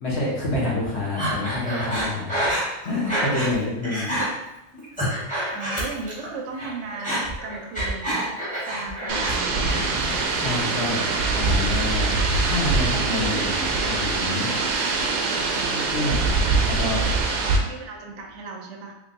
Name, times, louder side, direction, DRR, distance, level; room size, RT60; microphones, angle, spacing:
voice 1, 0.0-2.5 2.8-4.1 10.3-11.0 11.3-12.1 12.4-13.6 13.9-14.5 15.3-17.2, left 2 dB, 55° left, -5 dB, 1.2 m, -28 dB
Breathing, 1.2-3.6 3.8-4.3 4.7-6.3 6.5-9.4 9.7-10.3, right 1 dB, 5° left, 1.1 m, -27 dB
voice 2, 5.5-8.3 8.6-9.9 17.4-18.9, right 3 dB, 65° right, 1 dB, 0.9 m, -36 dB
sound 1, 9.1-17.6, right 3 dB, 85° right, 1.0 m, -23 dB
sound 2, 9.5-18.4, equal, 85° left, 0.3 m, -39 dB
3.7 x 3.1 x 2.6 m, 0.90 s
omnidirectional pair, 1.5 m